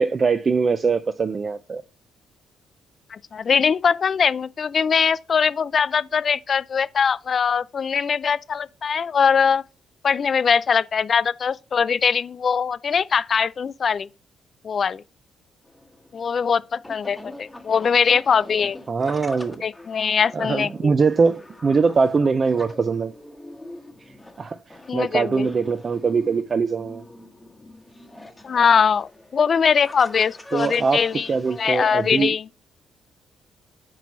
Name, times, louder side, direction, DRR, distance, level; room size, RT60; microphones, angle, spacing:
voice 1, 0.0-1.8 18.9-19.6 20.3-23.1 24.1-27.0 30.5-32.3, right 5 dB, 40° right, 0.4 m, -22 dB
voice 2, 3.1-9.6 10.0-14.1 14.6-15.0 16.1-18.8 19.6-20.9 24.9-25.5 28.4-31.3 31.6-32.5, left 6 dB, 45° left, 0.3 m, -21 dB
sound 1, 15.6-32.3, left 2 dB, 10° left, 1.0 m, -43 dB
6.0 x 4.6 x 4.1 m
cardioid pair, 90°, 0 cm